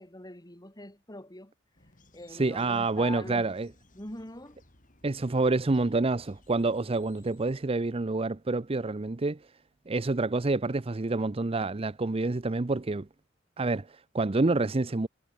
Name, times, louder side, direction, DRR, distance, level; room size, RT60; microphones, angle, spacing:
voice 1, 0.0-1.5 2.1-3.5 3.9-4.6, left 1 dB, 20° left, 5.4 m, -43 dB
sound 1, 1.7-7.6, left 1 dB, 45° left, 7.7 m, -61 dB
voice 2, 2.3-3.7 5.0-9.4 9.9-13.1 13.6-15.1, right 3 dB, 30° right, 0.6 m, -28 dB
head